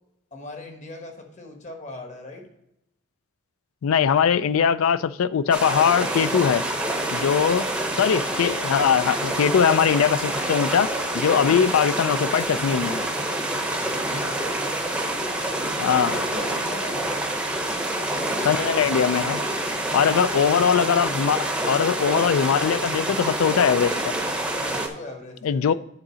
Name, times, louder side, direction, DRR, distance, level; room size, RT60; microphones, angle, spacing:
voice 1, 0.3-2.5 6.9-7.4 13.8-14.7 15.4-17.2 20.0-20.3 24.5-25.7, left 2 dB, 35° left, 1.2 m, -40 dB
voice 2, 3.8-6.6 7.1-7.6 8.0-10.9 11.1-13.0 15.8-16.2 18.4-19.4 19.9-24.1 25.4-25.7, left 7 dB, 75° left, 0.3 m, -21 dB
sound 1, 5.5-24.9, right 1 dB, 5° right, 0.7 m, -27 dB
8.9 x 3.8 x 6.1 m
head